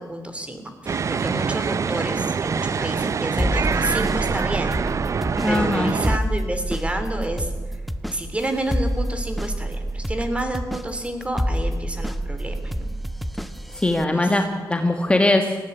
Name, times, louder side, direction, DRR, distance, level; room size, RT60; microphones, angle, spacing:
voice 1, 0.0-4.8 5.5-7.8 8.1-12.9 14.1-14.3, right 1 dB, 15° right, 7 dB, 3.0 m, -30 dB
sound 1, 0.9-6.2, right 6 dB, 45° right, 0.6 m, -25 dB
sound 2, 3.4-14.0, equal, ahead, 1.0 m, -28 dB
voice 2, 5.4-5.9 13.8-15.6, left 2 dB, 15° left, 4 dB, 1.6 m, -20 dB
19.5 x 14.5 x 9.8 m, 1.3 s
cardioid pair, 100°, 7 cm